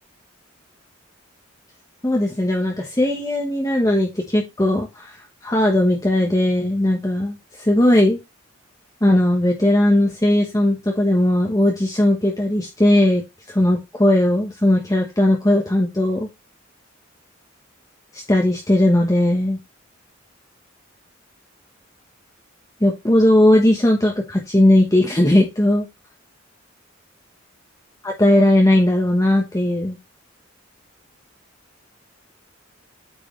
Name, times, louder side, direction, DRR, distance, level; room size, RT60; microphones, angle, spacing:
voice 1, 2.0-5.2 5.4-8.2 9.0-13.2 13.5-16.3 18.1-19.6 22.8-25.9 28.0-30.0, left 1 dB, 15° left, 0 dB, 1.2 m, -18 dB
9.1 x 4.8 x 3.2 m, 0.23 s
head